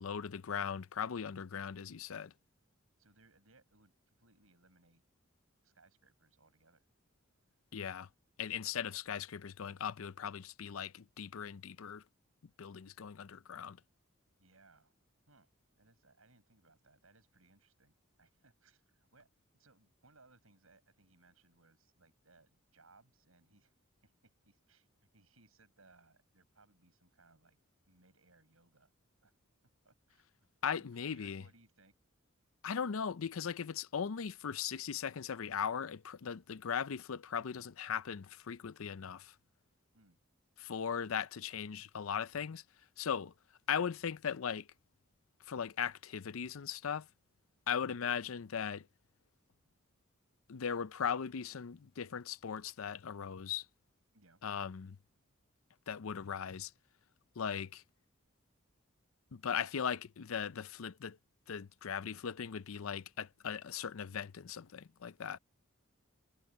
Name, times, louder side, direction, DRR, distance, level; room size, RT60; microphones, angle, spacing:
voice 1, 0.0-2.3 7.7-8.1 8.4-12.0 12.6-13.8 30.6-31.4 32.6-39.4 40.6-42.6 43.0-43.3 43.7-44.7 45.4-47.1 47.7-48.9 50.5-53.7 54.4-55.0 55.9-56.7 57.4-57.8 59.3-61.2 61.5-65.4, left 7 dB, 80° left, 0.5 m, -38 dB
voice 2, 3.0-5.0 5.6-6.8 14.4-14.9 15.3-15.5 15.8-19.3 19.5-23.7 24.0-24.9 25.1-27.6 27.9-28.9 29.2-29.3 29.8-31.9 39.9-40.2 54.1-54.4, right 3 dB, 85° right, 7.0 m, -67 dB
head